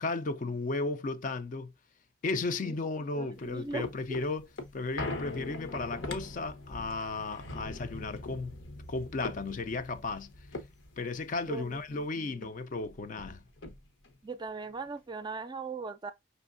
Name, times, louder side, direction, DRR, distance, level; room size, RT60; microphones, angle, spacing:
voice 1, 0.0-1.7 2.2-4.5 4.7-8.5 8.9-10.3 11.0-13.4, left 3 dB, 45° left, 0.4 m, -34 dB
voice 2, 3.1-4.2 11.5-12.5 14.2-16.1, right 4 dB, 25° right, 0.4 m, -39 dB
sound 1, 3.3-12.1 12.4-12.5 12.8-14.2 14.6-14.7, left 2 dB, 90° left, 0.9 m, -42 dB
5.3 x 3.1 x 2.5 m
head